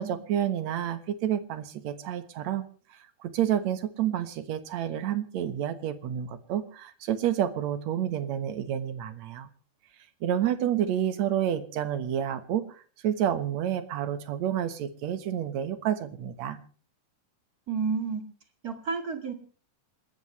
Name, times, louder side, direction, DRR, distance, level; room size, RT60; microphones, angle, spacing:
voice 1, 0.0-2.6 2.9-9.5 10.2-16.6, right 10 dB, 65° right, 10 dB, 2.4 m, -29 dB
voice 2, 17.7-18.2 18.6-19.3, right 5 dB, 35° right, 5 dB, 2.0 m, -30 dB
28.0 x 13.5 x 3.2 m, 0.41 s
omnidirectional pair, 3.7 m